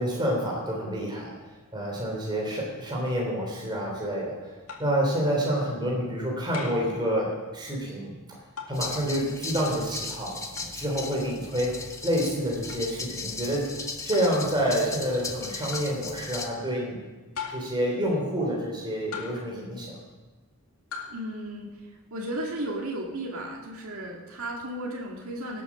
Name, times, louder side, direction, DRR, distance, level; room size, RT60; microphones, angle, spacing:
voice 1, 0.0-4.5 4.8-8.1 8.7-10.4 10.7-13.7 14.0-17.0 17.5-20.0, equal, 20° right, -2 dB, 3.3 m, -28 dB
sound 1, 4.7-5.0 6.5-6.9 8.6-8.8 10.6-10.7 12.7-12.9 14.1-14.4 15.7-16.0 17.3-17.8 19.1-19.6 20.9-21.2, left 5 dB, 85° left, 2.3 m, -39 dB
sound 2, 8.7-16.5, left 3 dB, 15° left, 1.1 m, -37 dB
voice 2, 21.1-25.6, right 1 dB, 80° right, -1 dB, 2.0 m, -34 dB
18.5 x 8.3 x 6.0 m, 1.2 s
head